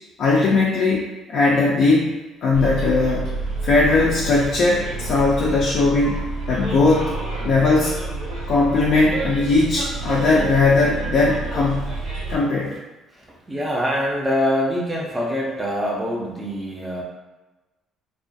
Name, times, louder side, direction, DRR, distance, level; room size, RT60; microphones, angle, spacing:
voice 1, 0.2-2.1 2.4-3.3 3.6-7.1 7.4-7.9 8.5-11.9 12.3-12.8, left 3 dB, 55° left, -5 dB, 0.4 m, -19 dB
Bus, 2.5-12.4, right 3 dB, 90° right, 0.9 m, -29 dB
voice 2, 13.1-17.0, equal, 15° right, -2 dB, 0.5 m, -24 dB
2.3 x 2.3 x 2.5 m, 1.1 s
cardioid pair, 125°, 0 cm